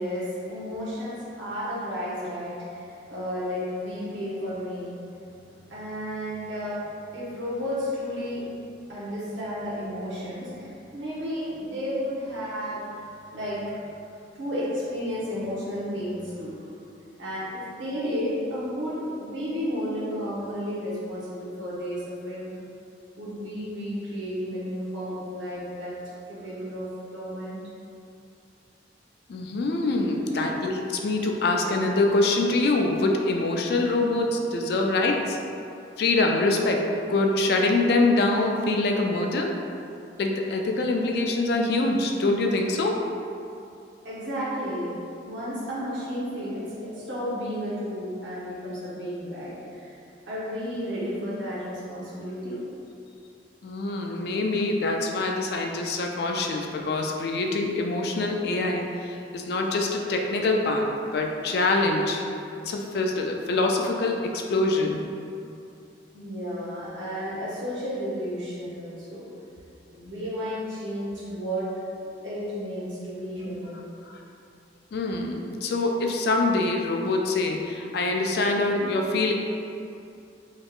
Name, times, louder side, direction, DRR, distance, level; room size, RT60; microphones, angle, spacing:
voice 1, 0.0-14.0 14.3-16.6 17.2-22.5 23.2-26.0 26.3-27.6 30.1-30.6 44.0-44.9 45.2-49.9 50.3-52.6 66.1-69.2 69.9-71.7 72.0-73.9, equal, 90° right, -9 dB, 1.1 m, -32 dB
voice 2, 29.3-35.4 36.0-39.5 40.2-43.0 53.6-62.2 62.7-65.0 74.9-79.3, left 2 dB, 60° left, 2 dB, 0.3 m, -24 dB
3.5 x 3.1 x 2.4 m, 2.6 s
head